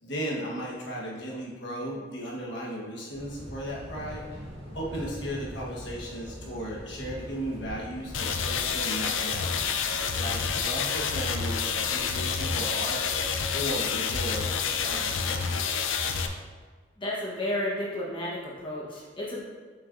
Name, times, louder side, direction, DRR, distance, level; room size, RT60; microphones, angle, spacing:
voice 1, 0.0-4.3 4.7-9.7 10.2-14.5 14.8-15.6, equal, 70° left, -4 dB, 1.3 m, -36 dB
sound 1, 3.1-15.4, right 1 dB, 80° right, 1.7 m, -42 dB
sound 2, 8.1-16.3, left 6 dB, 90° left, 0.5 m, -28 dB
voice 2, 17.0-19.4, left 1 dB, 25° left, -5 dB, 1.1 m, -32 dB
7.2 x 5.9 x 2.6 m, 1.5 s
head